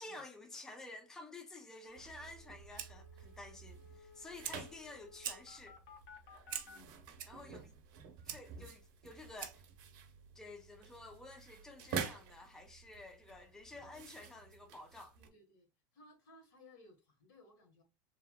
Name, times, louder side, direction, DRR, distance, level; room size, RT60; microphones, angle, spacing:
voice 1, 0.0-5.8 7.3-7.7 8.2-9.6 10.3-15.2, left 2 dB, 5° left, 0.4 m, -51 dB
sound 1, 1.5-1.6 1.9-2.0 2.2-6.8, left 6 dB, 60° left, 0.9 m, -58 dB
sound 2, 1.9-15.3, right 6 dB, 55° right, 0.9 m, -49 dB
Fire, 2.3-9.8, right 10 dB, 85° right, 0.6 m, -49 dB
voice 2, 6.6-7.0 7.4-7.8 15.1-17.8, left 2 dB, 75° left, 1.5 m, -62 dB
3.2 x 2.7 x 2.2 m
supercardioid pair, 140°, 11 cm